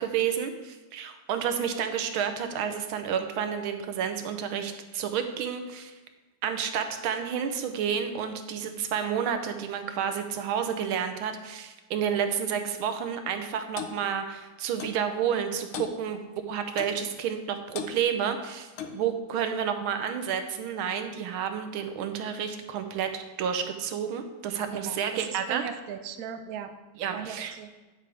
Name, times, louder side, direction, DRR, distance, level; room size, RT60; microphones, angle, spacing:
voice 1, 0.0-5.9 6.4-25.6 27.0-27.5, right 8 dB, 85° right, 7 dB, 1.6 m, -30 dB
Clock, 13.8-14.0 14.8-15.0 15.7-16.0 16.8-17.0 17.7-18.0 18.8-19.0, left 7 dB, 85° left, 1.6 m, -37 dB
voice 2, 24.9-26.7 27.1-27.7, right 8 dB, 65° right, 8 dB, 0.9 m, -38 dB
9.3 x 8.4 x 3.5 m, 1.2 s
omnidirectional pair, 2.3 m